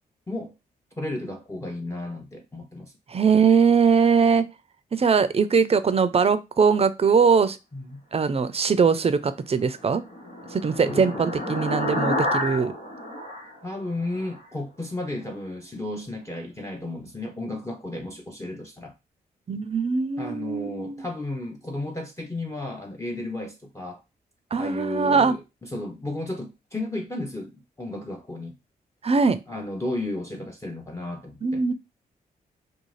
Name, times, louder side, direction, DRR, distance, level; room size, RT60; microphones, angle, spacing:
voice 1, 0.3-0.6 1.0-2.9 7.7-8.0 10.8-11.2 13.6-18.9 20.2-24.0 24.5-28.5 29.5-31.6, left 2 dB, 15° left, 0.6 m, -33 dB
voice 2, 3.1-4.5 4.9-7.6 8.1-10.0 10.5-12.7 19.5-20.9 24.5-25.4 29.0-29.4 31.4-31.7, right 5 dB, 35° right, 0.4 m, -21 dB
sound 1, 9.6-14.4, left 1 dB, 85° left, 1.2 m, -30 dB
2.4 x 2.3 x 3.1 m
cardioid pair, 50°, 17 cm